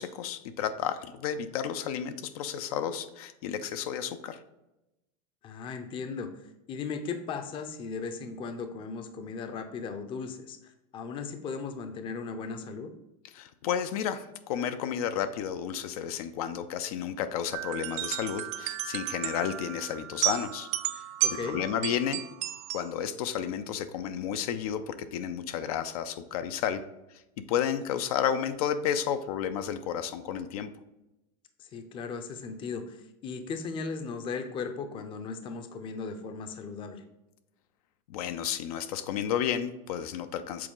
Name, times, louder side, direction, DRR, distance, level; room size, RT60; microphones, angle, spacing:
voice 1, 0.0-4.4 13.3-21.0 21.4-22.2 22.7-26.8 27.5-30.7 38.1-40.7, left 9 dB, 70° left, 10 dB, 0.5 m, -32 dB
voice 2, 5.4-12.9 21.2-21.6 31.6-37.0, left 5 dB, 25° left, 8 dB, 0.6 m, -37 dB
sound 1, 17.5-22.9, right 14 dB, 40° right, 0.4 m, -33 dB
7.6 x 3.9 x 3.7 m, 0.93 s
supercardioid pair, 145°, 20 cm